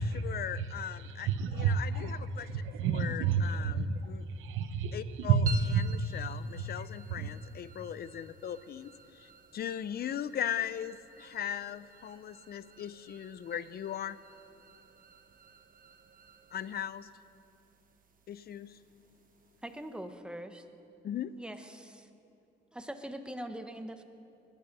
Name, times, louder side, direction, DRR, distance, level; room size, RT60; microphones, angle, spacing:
voice 1, 0.0-2.5 2.9-4.2 4.9-5.4 5.8-14.2 16.5-17.1 18.3-18.8 21.0-21.3, left 9 dB, 50° left, 0.5 m, -39 dB
voice 2, 1.0-4.0 4.3-6.2 7.1-7.3, right 5 dB, 90° right, 0.8 m, -30 dB
sound 1, 5.5-20.1, right 3 dB, 45° right, 1.1 m, -52 dB
voice 3, 19.6-20.6 21.4-22.1 22.7-24.0, right 1 dB, 5° right, 1.1 m, -42 dB
20.5 x 11.0 x 5.4 m
cardioid pair, 90°, 20 cm